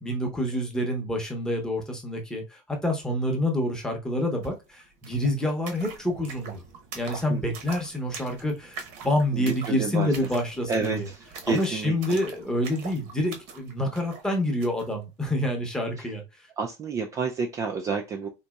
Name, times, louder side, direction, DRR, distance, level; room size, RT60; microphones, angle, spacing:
voice 1, 0.0-6.6 6.9-11.1 11.5-16.2, left 1 dB, 5° left, 0.8 m, -27 dB
sound 1, 4.4-4.5 4.7-14.9, right 5 dB, 55° right, 0.9 m, -43 dB
voice 2, 9.3-10.1 10.7-12.2 13.8-13.9 16.0-16.1 16.6-18.3, right 5 dB, 25° right, 0.3 m, -30 dB
4.0 x 2.7 x 2.3 m
cardioid pair, 160°, 14 cm